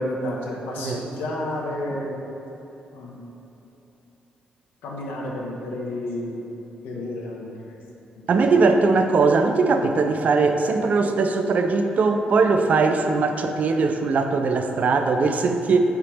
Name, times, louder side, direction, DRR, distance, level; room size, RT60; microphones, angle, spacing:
voice 1, 0.0-2.2 2.9-3.2 4.8-6.4 6.8-7.7, left 1 dB, 85° left, -2 dB, 0.7 m, -30 dB
voice 2, 8.3-15.8, right 4 dB, 55° right, 6 dB, 0.3 m, -20 dB
4.7 x 3.4 x 2.9 m, 3.0 s
cardioid pair, 70°, 3 cm